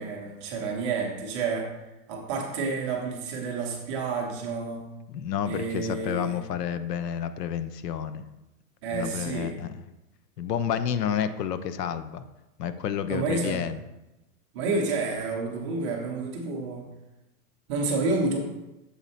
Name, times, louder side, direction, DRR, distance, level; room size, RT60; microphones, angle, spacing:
voice 1, 0.0-4.9 5.5-6.4 8.8-9.6 13.1-13.6 14.5-16.9 17.7-18.4, right 4 dB, 20° right, 0 dB, 0.4 m, -30 dB
voice 2, 5.1-8.2 8.9-9.7 10.4-12.2 12.6-13.8, left 8 dB, 90° left, 12 dB, 0.7 m, -30 dB
7.1 x 4.1 x 4.0 m, 0.99 s
supercardioid pair, 155°, 47 cm